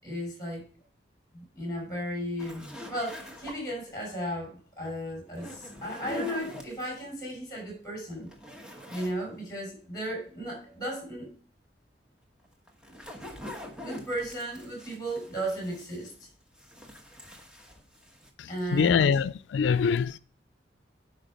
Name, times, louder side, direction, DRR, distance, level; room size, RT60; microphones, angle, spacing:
voice 1, 0.0-0.6 1.3-8.3 8.9-11.3 12.9-13.0 13.8-16.1 18.5-19.1, equal, 20° left, 5.8 m, -35 dB
sound 1, 2.4-3.9 5.3-7.0 7.6-7.7 8.1-9.2 9.5-9.6 12.4-16.3 16.5-18.3, left 1 dB, 5° right, 1.2 m, -44 dB
voice 2, 18.4-20.2, left 6 dB, 90° left, 0.3 m, -25 dB
10.0 x 5.1 x 5.2 m
head